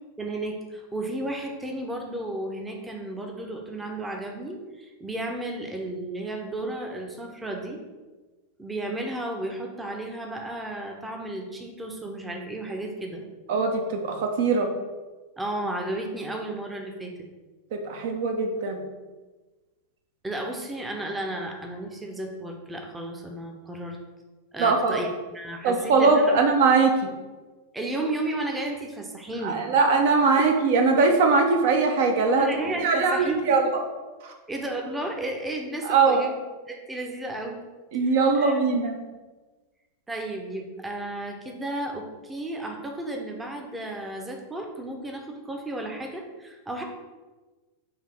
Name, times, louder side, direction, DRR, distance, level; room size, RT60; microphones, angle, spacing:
voice 1, 0.2-7.8 8.6-13.2 15.4-17.1 20.2-24.0 24.5-25.1 25.3-26.4 27.7-29.6 32.4-33.6 34.5-36.3 36.7-37.6 38.0-38.6 40.1-46.8, right 1 dB, 10° right, 2 dB, 0.6 m, -33 dB
voice 2, 13.5-14.7 17.7-18.8 24.6-25.0 25.6-27.1 29.4-32.5 32.8-33.8 34.2-34.3 35.8-36.3 37.9-39.0, right 4 dB, 50° right, 4 dB, 0.5 m, -21 dB
4.8 x 2.6 x 3.4 m, 1.3 s
figure-of-eight pair, 90°, 0 cm